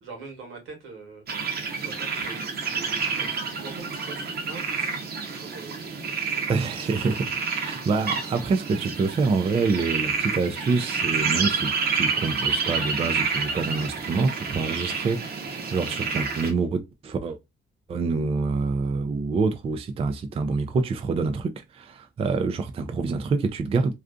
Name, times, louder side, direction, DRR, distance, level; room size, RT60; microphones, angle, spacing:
voice 1, 0.0-1.2 1.7-6.6, right 3 dB, 80° right, 1.1 m, -43 dB
sound 1, 1.3-16.5, right 5 dB, 50° right, 0.8 m, -29 dB
voice 2, 6.5-17.4 17.9-23.9, right 4 dB, 30° right, 0.3 m, -26 dB
2.5 x 2.3 x 2.2 m
cardioid pair, 90°, 20 cm